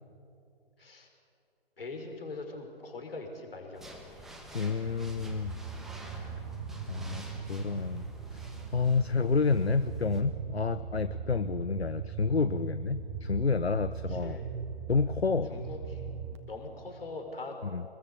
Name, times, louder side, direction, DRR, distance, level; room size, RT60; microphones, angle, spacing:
voice 1, 1.8-4.1 9.1-9.2 14.1-14.5 15.5-16.1 16.5-17.6, left 3 dB, 65° left, 3 dB, 5.6 m, -42 dB
sound 1, 3.7-10.2, equal, ahead, 1.5 m, -49 dB
voice 2, 4.5-5.5 6.9-7.2 7.5-8.0 8.3-14.4 14.9-15.7 17.7-17.8, left 4 dB, 80° left, 13 dB, 0.8 m, -29 dB
sound 2, 4.8-16.4, right 6 dB, 30° right, 1.6 m, -40 dB
24.5 x 21.0 x 8.1 m, 2.5 s
figure-of-eight pair, 135°, 31 cm